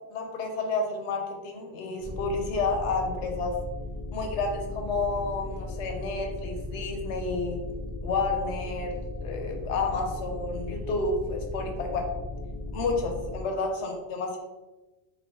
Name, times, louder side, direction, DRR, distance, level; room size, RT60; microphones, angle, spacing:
voice 1, 0.1-3.5 4.1-7.6 8.0-12.1 12.7-14.4, left 3 dB, 65° left, 3 dB, 0.9 m, -30 dB
sound 1, 2.0-13.4, left 2 dB, 35° left, 0.3 m, -36 dB
3.5 x 3.1 x 2.7 m, 1.1 s
omnidirectional pair, 1.3 m